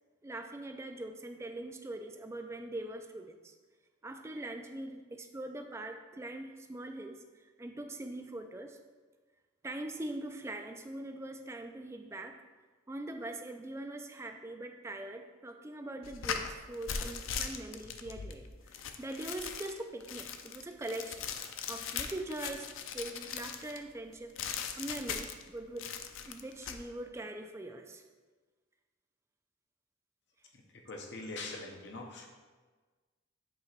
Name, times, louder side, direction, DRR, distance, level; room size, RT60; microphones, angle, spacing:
voice 1, 0.2-3.5 4.0-7.2 7.6-8.8 9.6-12.4 12.9-21.3 21.7-24.4 24.8-25.9 26.2-28.0, right 1 dB, 15° right, 5 dB, 0.4 m, -42 dB
sound 1, 16.0-23.8 24.4-25.5 25.8-26.8, left 7 dB, 80° left, 0.4 m, -39 dB
voice 2, 30.7-32.3, left 2 dB, 60° left, 2 dB, 0.9 m, -42 dB
7.6 x 2.9 x 4.4 m, 1.4 s
head